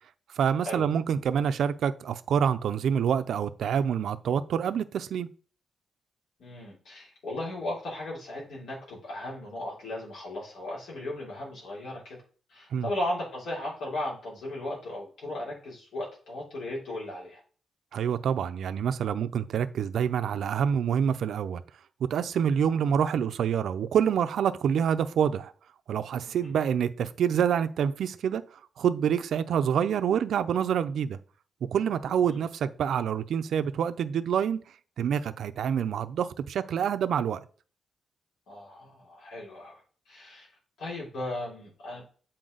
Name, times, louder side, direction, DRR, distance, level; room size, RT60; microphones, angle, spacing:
voice 1, 0.3-5.3 12.7-12.9 17.9-21.6 22.1-25.5 25.9-28.4 28.8-31.2 31.7-34.6 35.0-37.4, right 8 dB, 70° right, 0.5 m, -27 dB
voice 2, 6.4-12.2 12.5-17.4 26.2-26.5 32.2-32.4 38.5-40.5 40.8-42.0, left 1 dB, 70° left, 3.2 m, -36 dB
7.7 x 4.3 x 3.9 m
wide cardioid pair, 160°, 0 cm